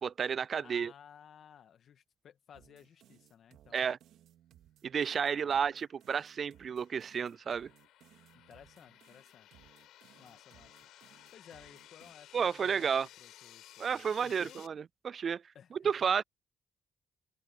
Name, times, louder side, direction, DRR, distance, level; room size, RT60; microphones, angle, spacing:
voice 1, 0.0-0.9 3.7-4.0 4.8-7.7 12.3-13.1 13.8-15.4 15.7-16.2, right 7 dB, 50° right, 0.3 m, -32 dB
voice 2, 0.6-3.9 5.3-5.6 8.3-9.5 10.2-12.8 13.2-13.9 14.2-14.6 15.5-15.9, left 8 dB, 60° left, 2.2 m, -57 dB
sound 1, 2.5-12.1, right 11 dB, 80° right, 3.0 m, -63 dB
sound 2, 5.7-14.7, left 13 dB, 85° left, 6.0 m, -57 dB
open air
cardioid pair, 90°, 0 cm